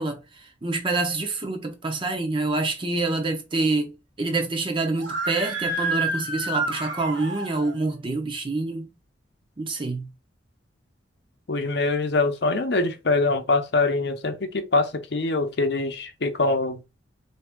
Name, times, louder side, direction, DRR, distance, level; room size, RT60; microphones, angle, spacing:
voice 1, 0.0-8.9 9.6-10.1, right 2 dB, 30° right, 0.7 m, -27 dB
Screaming, 4.9-7.7, right 2 dB, 75° right, 1.3 m, -29 dB
voice 2, 11.5-16.8, left 3 dB, 65° left, 0.7 m, -24 dB
3.5 x 2.7 x 3.6 m
head